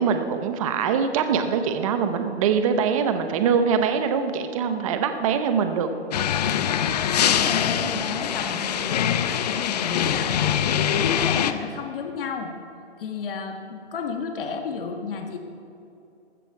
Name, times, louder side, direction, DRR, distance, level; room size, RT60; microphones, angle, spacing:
voice 1, 0.0-5.9, right 6 dB, 30° right, 8 dB, 0.7 m, -23 dB
sound 1, 6.1-11.5, left 9 dB, 40° left, 0.6 m, -23 dB
voice 2, 7.2-10.6 10.9-12.5 13.0-15.4, left 5 dB, 55° left, 4 dB, 1.5 m, -32 dB
15.0 x 13.0 x 4.7 m, 2.7 s
hypercardioid pair, 155°, 33 cm